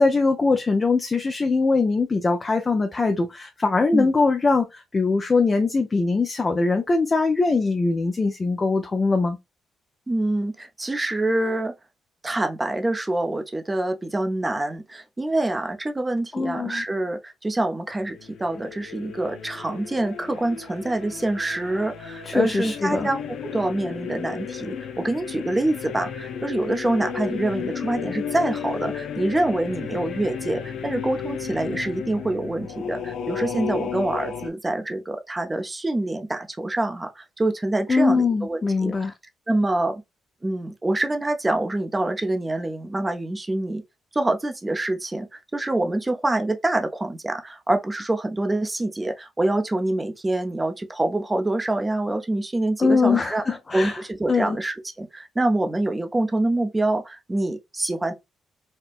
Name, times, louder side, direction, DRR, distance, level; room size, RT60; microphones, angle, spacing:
voice 1, 0.0-9.4 16.3-16.8 22.3-23.1 37.9-39.1 52.8-54.0 54.3-54.6, left 3 dB, 30° left, 0.5 m, -22 dB
voice 2, 10.1-11.7 12.2-38.9 39.5-40.0 40.4-43.8 44.1-53.4 53.7-58.1, right 2 dB, 20° right, 0.7 m, -26 dB
sound 1, 18.1-34.5, left 7 dB, 75° left, 0.5 m, -33 dB
4.3 x 2.1 x 2.5 m
cardioid pair, 90°, 0 cm